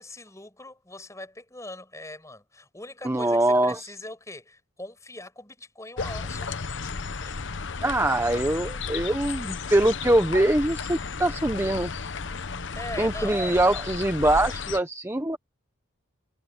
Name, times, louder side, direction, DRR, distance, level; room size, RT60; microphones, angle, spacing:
voice 1, 0.0-6.9 7.2-7.3 12.7-13.4, left 2 dB, 15° left, 6.4 m, -41 dB
voice 2, 3.0-3.9 7.8-11.9 13.0-15.4, right 1 dB, 15° right, 0.9 m, -23 dB
sound 1, 6.0-14.8, left 4 dB, 60° left, 0.9 m, -33 dB
head